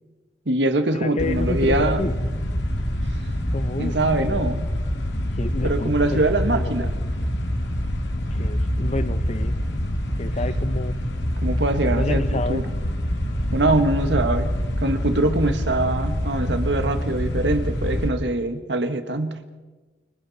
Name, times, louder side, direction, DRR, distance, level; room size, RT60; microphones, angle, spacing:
voice 1, 0.4-2.1 3.8-4.6 5.6-6.9 11.4-12.7 13.5-14.5 14.8-19.4, right 2 dB, 90° right, 8 dB, 1.6 m, -23 dB
voice 2, 1.0-2.1 3.5-4.5 5.4-6.2 6.6-6.9 8.3-9.6 10.2-10.9 11.9-12.6, left 2 dB, 40° left, 12 dB, 0.9 m, -29 dB
sound 1, 1.2-18.1, equal, 85° left, 2.4 m, -25 dB
29.5 x 23.0 x 4.2 m, 1.3 s
head